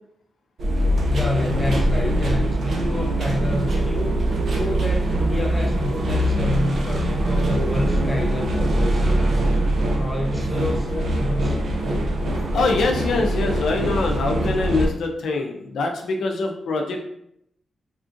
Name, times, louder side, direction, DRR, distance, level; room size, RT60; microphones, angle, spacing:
sound 1, 0.6-14.9, right 1 dB, 60° right, 0.5 m, -22 dB
voice 1, 1.1-9.5 10.0-11.6, left 1 dB, 15° left, 0 dB, 0.5 m, -28 dB
voice 2, 12.5-17.0, left 3 dB, 85° left, 2 dB, 0.4 m, -24 dB
3.6 x 2.5 x 2.4 m, 0.74 s
wide cardioid pair, 135°, 0 cm